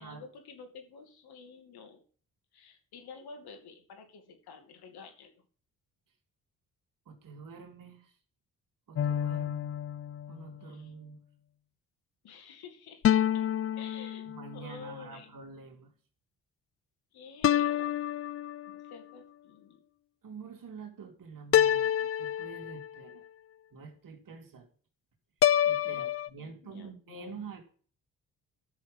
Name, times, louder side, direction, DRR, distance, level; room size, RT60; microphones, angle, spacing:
voice 1, 0.0-2.0 2.5-5.4 10.7-10.9 12.2-13.4 13.8-14.3 14.5-15.3 17.1-18.0 18.7-19.8 25.8-26.1 26.4-27.3, left 5 dB, 70° left, 6 dB, 2.4 m, -50 dB
voice 2, 7.0-8.2 8.9-9.7 10.3-11.2 14.3-15.9 20.2-23.2 23.7-24.7 25.6-27.6, right 5 dB, 55° right, 3 dB, 2.9 m, -47 dB
sound 1, 9.0-10.6 13.0-14.7 17.4-18.9 21.5-23.1 25.4-26.3, left 10 dB, 35° left, 0.5 m, -28 dB
11.5 x 6.5 x 5.3 m, 0.43 s
supercardioid pair, 50°, 39 cm